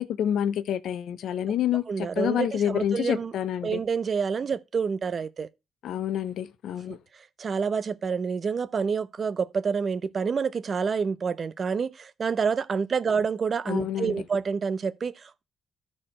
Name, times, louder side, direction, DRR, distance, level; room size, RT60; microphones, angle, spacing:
voice 1, 0.0-3.8 5.8-7.0 13.7-14.2, left 10 dB, 75° left, 0.6 m, -28 dB
voice 2, 1.9-3.3 3.6-5.5 6.9-15.4, right 5 dB, 45° right, 0.6 m, -28 dB
13.0 x 4.4 x 4.3 m
cardioid pair, 90°, 0 cm